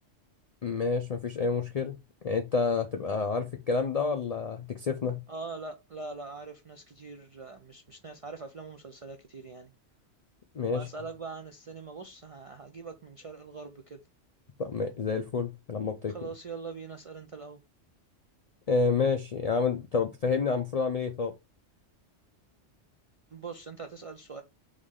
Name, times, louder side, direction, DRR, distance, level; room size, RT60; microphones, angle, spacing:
voice 1, 0.6-2.0 2.2-5.2 10.5-10.9 14.6-16.1 18.7-21.3, left 4 dB, 60° left, 0.4 m, -29 dB
voice 2, 5.3-9.7 10.7-14.0 16.1-17.6 23.3-24.4, right 4 dB, 55° right, 0.3 m, -42 dB
3.8 x 3.2 x 3.5 m
omnidirectional pair, 1.2 m